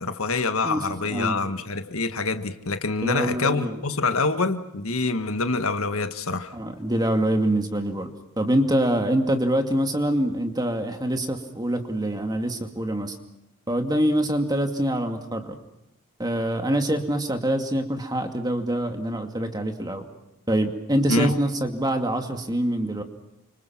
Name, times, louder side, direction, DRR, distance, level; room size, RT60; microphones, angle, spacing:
voice 1, 0.0-6.5 21.1-21.4, left 3 dB, 70° left, 9 dB, 1.6 m, -26 dB
voice 2, 0.6-1.4 3.0-3.8 6.5-8.1 8.4-13.2 13.7-15.5 16.2-20.0 20.5-23.0, right 1 dB, 20° right, 5 dB, 2.4 m, -25 dB
29.5 x 25.5 x 6.0 m, 0.81 s
head